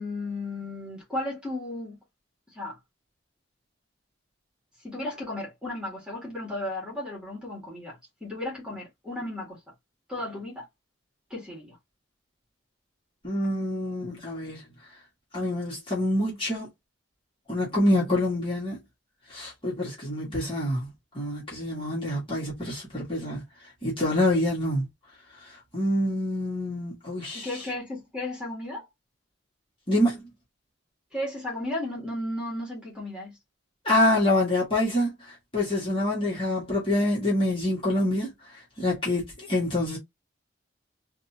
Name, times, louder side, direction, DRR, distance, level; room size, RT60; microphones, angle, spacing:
voice 1, 0.0-2.0 2.5-2.8 4.8-9.6 10.1-10.7 11.3-11.8 20.3-20.4 27.3-28.9 31.1-33.4, left 1 dB, 5° right, 1.9 m, -34 dB
voice 2, 13.2-14.6 15.3-16.7 17.5-18.8 19.3-23.4 23.8-24.9 25.7-27.5 29.9-30.2 33.9-35.1 35.5-38.3 38.8-40.0, left 1 dB, 25° left, 1.8 m, -26 dB
3.9 x 2.7 x 2.8 m
head